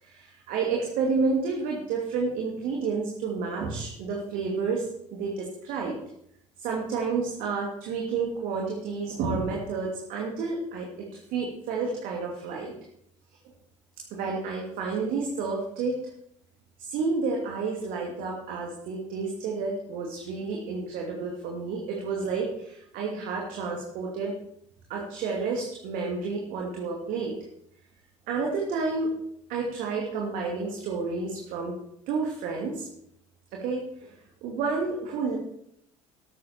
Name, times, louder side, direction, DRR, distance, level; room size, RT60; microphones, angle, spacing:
voice 1, 0.0-6.0 6.6-12.7 14.1-16.0 16.8-24.3 24.9-27.3 28.3-29.2 29.5-31.8 32.1-32.9 33.5-35.4, right 4 dB, 55° right, -1 dB, 2.6 m, -30 dB
13.0 x 12.5 x 4.4 m, 0.71 s
figure-of-eight pair, 60°, 16 cm